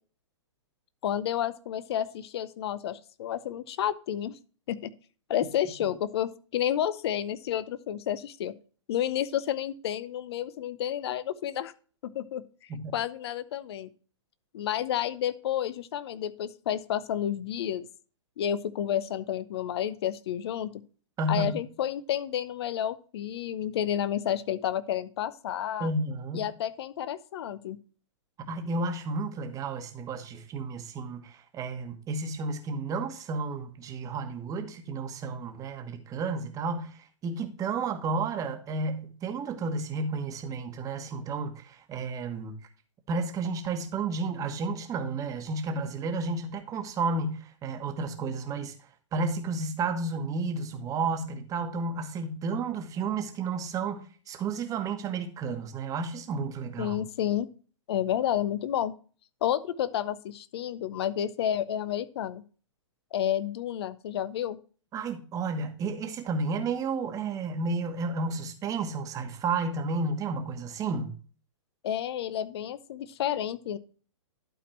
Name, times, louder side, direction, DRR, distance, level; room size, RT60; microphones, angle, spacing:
voice 1, 1.0-4.4 4.7-4.9 5.3-8.5 8.9-11.7 12.0-12.4 12.9-13.9 14.5-17.9 18.4-20.7 21.3-25.9 26.3-27.8 56.8-57.5 57.9-58.9 59.4-62.4 63.1-64.6 71.8-73.8, left 10 dB, 55° left, 0.7 m, -30 dB
voice 2, 21.2-21.5 25.8-26.5 28.4-42.6 43.1-48.7 49.1-57.0 64.9-71.1, right 3 dB, 20° right, 1.3 m, -32 dB
12.0 x 4.2 x 4.4 m
hypercardioid pair, 125°, 16 cm